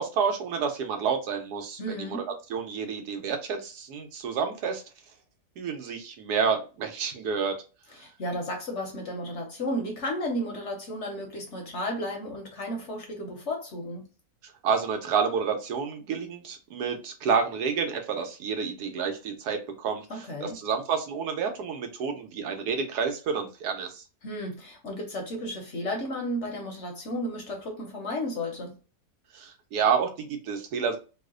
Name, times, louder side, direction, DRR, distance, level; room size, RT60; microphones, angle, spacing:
voice 1, 0.0-2.2 2.5-4.8 5.6-7.6 14.4-24.0 29.3-31.0, right 6 dB, 80° right, 1.2 m, -29 dB
voice 2, 1.8-2.3 7.9-14.1 20.1-20.6 24.2-28.8, equal, 60° left, 0.9 m, -33 dB
3.0 x 2.1 x 3.6 m
omnidirectional pair, 1.7 m